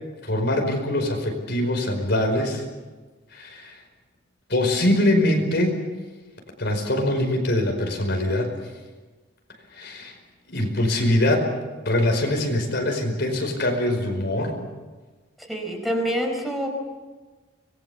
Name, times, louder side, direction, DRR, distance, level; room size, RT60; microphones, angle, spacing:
voice 1, 0.2-2.6 3.3-3.8 4.5-5.8 6.6-8.5 9.8-10.1 10.5-11.5 11.8-14.6, left 1 dB, 55° left, 3 dB, 5.0 m, -23 dB
voice 2, 15.4-16.7, equal, ahead, 1 dB, 4.8 m, -26 dB
26.0 x 21.5 x 7.1 m, 1.3 s
head